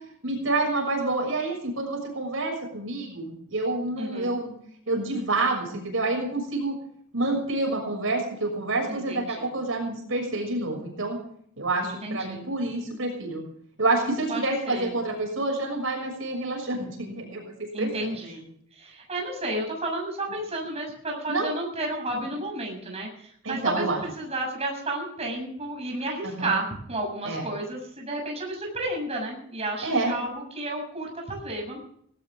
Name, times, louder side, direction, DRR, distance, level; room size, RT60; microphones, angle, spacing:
voice 1, 0.2-4.5 4.9-6.8 7.1-11.2 11.6-13.4 13.8-18.1 21.3-21.5 22.1-22.3 23.4-24.0 26.2-26.6 27.2-27.4 29.8-30.1, right 2 dB, 70° right, 2 dB, 6.4 m, -28 dB
voice 2, 4.0-4.4 8.9-9.6 11.8-12.5 14.3-15.0 17.7-18.5 18.7-31.8, right 1 dB, 30° right, 0 dB, 7.0 m, -32 dB
18.5 x 18.5 x 3.6 m, 0.65 s
head